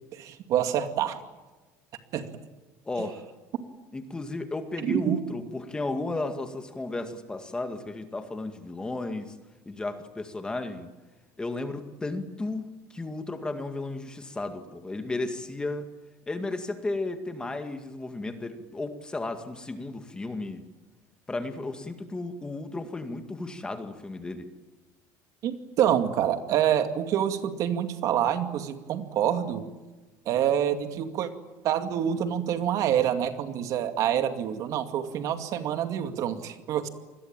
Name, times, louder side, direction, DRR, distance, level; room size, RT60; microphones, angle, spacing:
voice 1, 0.1-1.2 2.1-2.3 4.8-5.2 25.4-29.6 30.3-31.3 31.6-36.9, right 10 dB, 50° right, 8 dB, 2.3 m, -26 dB
voice 2, 2.9-3.3 3.9-9.3 9.7-10.9 11.4-12.7 12.9-15.9 16.3-20.6 21.3-24.5, left 2 dB, 10° left, 7 dB, 2.1 m, -34 dB
27.5 x 21.5 x 9.0 m, 1.2 s
cardioid pair, 150°, 7 cm